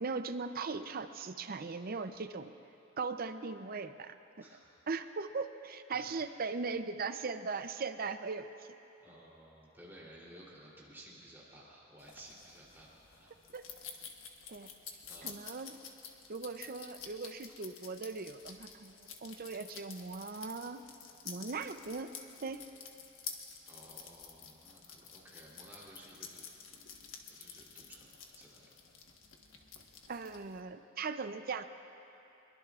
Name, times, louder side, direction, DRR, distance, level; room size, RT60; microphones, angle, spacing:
voice 1, 0.0-2.5 3.0-4.1 4.9-8.7 13.5-13.7 14.5-14.7 15.2-15.8 16.3-20.8 21.2-22.1 22.4-22.6 30.1-31.6, right 4 dB, 50° right, 9 dB, 0.6 m, -39 dB
voice 2, 9.0-12.9 13.2-13.3 15.1-15.4 17.1-17.6 23.6-26.8 27.3-28.7, right 1 dB, 10° right, -5 dB, 3.2 m, -55 dB
sound 1, 12.0-30.6, left 6 dB, 75° left, 1.3 m, -50 dB
22.5 x 22.5 x 2.5 m, 2.8 s
head